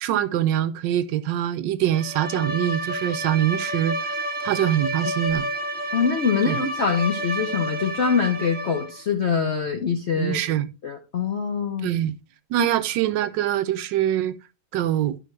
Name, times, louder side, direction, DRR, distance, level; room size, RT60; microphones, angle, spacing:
voice 1, 0.0-4.1 4.4-5.5 6.5-6.6 10.2-10.7 11.8-12.2 12.5-14.4 14.7-15.2, right 12 dB, 75° right, 1.2 m, -24 dB
Bowed string instrument, 1.9-9.0, right 1 dB, 35° right, 0.8 m, -30 dB
voice 2, 5.9-10.4 10.8-11.9 12.6-12.7, left 6 dB, 60° left, 0.7 m, -24 dB
11.5 x 5.6 x 3.2 m
omnidirectional pair, 2.1 m